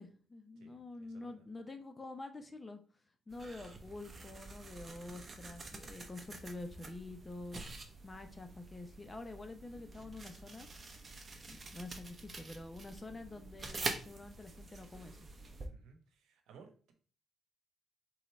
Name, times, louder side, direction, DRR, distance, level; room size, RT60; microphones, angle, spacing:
voice 1, 0.0-2.8 3.3-7.6 8.0-10.7 11.5-15.3, left 2 dB, 20° left, 6 dB, 0.7 m, -47 dB
voice 2, 0.6-1.4 15.6-16.9, right 5 dB, 85° right, 5 dB, 1.0 m, -60 dB
sound 1, 3.3-15.7, right 3 dB, 35° right, 0.8 m, -47 dB
3.9 x 3.0 x 4.4 m, 0.41 s
cardioid pair, 90°, 0 cm